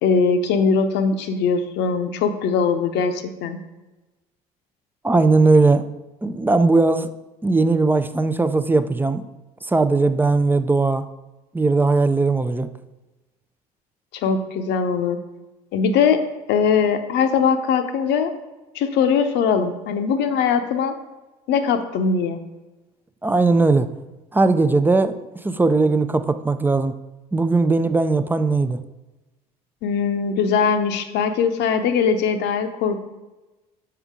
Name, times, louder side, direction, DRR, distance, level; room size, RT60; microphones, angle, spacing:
voice 1, 0.0-3.6 14.1-15.2 15.7-16.2 16.5-18.3 18.7-20.9 21.5-22.4 29.8-33.0, left 6 dB, 60° left, 0.8 m, -21 dB
voice 2, 5.0-5.9 6.2-7.1 7.4-9.3 9.7-11.1 11.5-12.7 23.2-23.9 24.3-26.9 27.3-28.8, right 3 dB, 10° right, 0.4 m, -18 dB
7.0 x 5.7 x 3.6 m
hypercardioid pair, 60°, 20 cm